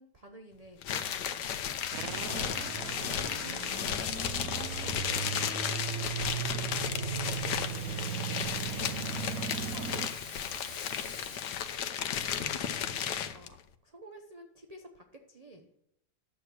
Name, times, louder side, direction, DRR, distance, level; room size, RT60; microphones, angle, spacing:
voice 1, 0.0-1.5 13.3-13.6 13.8-15.7, right 1 dB, 30° right, 4 dB, 0.8 m, -53 dB
sound 1, 0.8-13.5, left 9 dB, 75° left, 1.4 m, -34 dB
sound 2, 1.9-10.1, right 8 dB, 60° right, 1.1 m, -37 dB
voice 2, 2.3-3.9 4.4-6.7 8.5-11.4 11.7-12.4, right 1 dB, 10° right, 0 dB, 2.6 m, -53 dB
Rattle (instrument), 6.9-11.9, left 4 dB, 45° left, 2.1 m, -48 dB
10.5 x 7.8 x 6.2 m, 0.78 s
omnidirectional pair, 1.8 m